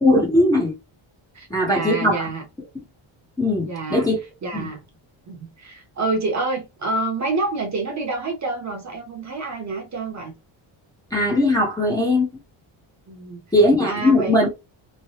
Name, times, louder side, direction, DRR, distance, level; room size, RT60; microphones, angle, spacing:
voice 1, 0.0-0.7 1.5-2.3 3.4-4.2 4.5-4.7 11.1-12.3 13.5-14.5, left 1 dB, 10° left, 0.7 m, -19 dB
voice 2, 1.3-2.4 3.6-4.1 4.4-4.8 5.3-10.3 13.1-13.4 13.9-14.4, right 3 dB, 35° right, 0.9 m, -27 dB
3.2 x 2.2 x 2.8 m
cardioid pair, 160°, 49 cm